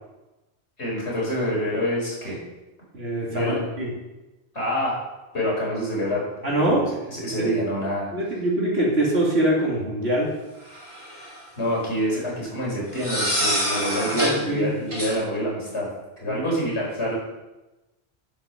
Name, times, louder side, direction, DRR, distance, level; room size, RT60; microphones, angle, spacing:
voice 1, 0.8-2.4 3.3-3.6 4.5-5.0 5.3-6.2 6.5-8.1 11.6-15.9 16.2-17.1, equal, 80° left, -5 dB, 5.1 m, -26 dB
voice 2, 2.9-3.9 6.4-6.9 7.4-7.6 8.1-10.3 13.7-14.7 16.2-16.4, right 1 dB, 70° right, -4 dB, 2.8 m, -24 dB
sound 1, 10.7-11.4 13.0-14.4 14.9-15.1, equal, 35° right, 4.0 m, -26 dB
10.5 x 8.5 x 5.8 m, 1.0 s
omnidirectional pair, 1.1 m